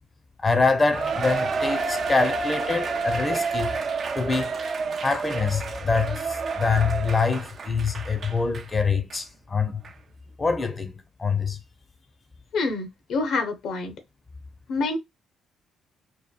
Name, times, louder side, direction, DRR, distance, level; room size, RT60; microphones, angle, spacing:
voice 1, 0.4-3.8 4.1-4.5 5.0-9.8 10.4-11.6, left 4 dB, 30° left, 0.5 m, -25 dB
Cheering, 0.9-8.7 9.1-9.2 9.8-9.9, right 4 dB, 50° right, 0.4 m, -29 dB
voice 2, 12.5-13.9 14.7-15.0, left 3 dB, 70° left, 0.6 m, -27 dB
2.9 x 2.2 x 2.2 m
hypercardioid pair, 55°, 0 cm